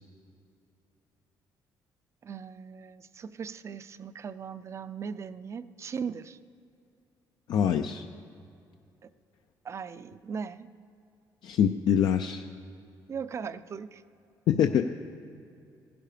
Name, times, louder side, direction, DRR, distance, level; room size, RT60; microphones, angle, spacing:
voice 1, 2.2-6.4 9.0-9.1 9.6-10.7 13.1-14.0, right 6 dB, 35° right, 14 dB, 0.4 m, -38 dB
voice 2, 7.5-8.0 11.4-12.5 14.5-14.9, left 8 dB, 70° left, 6 dB, 0.5 m, -24 dB
15.5 x 11.0 x 5.0 m, 2.6 s
cardioid pair, 130°, 8 cm